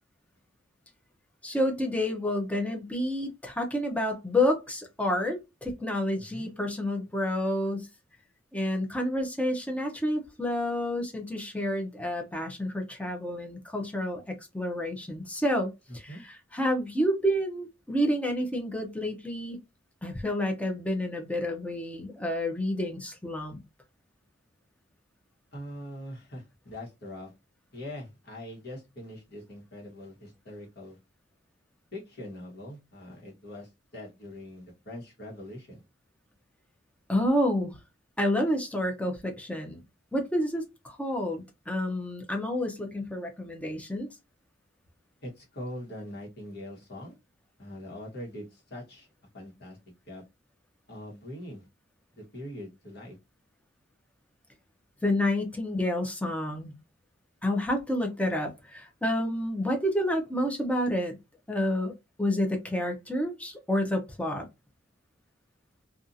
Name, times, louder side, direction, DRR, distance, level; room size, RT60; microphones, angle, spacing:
voice 1, 1.4-7.9 8.5-19.6 20.0-23.6 37.1-37.8 38.2-39.8 40.1-44.1 55.0-56.7 57.4-61.1 61.5-61.9 62.2-64.5, left 1 dB, 5° left, 0.6 m, -29 dB
voice 2, 15.9-16.2 25.5-27.3 27.7-31.0 31.9-35.8 45.2-47.1 47.6-49.1 49.3-49.8 50.1-50.2 50.9-51.7 52.1-53.2, left 1 dB, 55° left, 1.2 m, -42 dB
2.6 x 2.4 x 2.6 m
head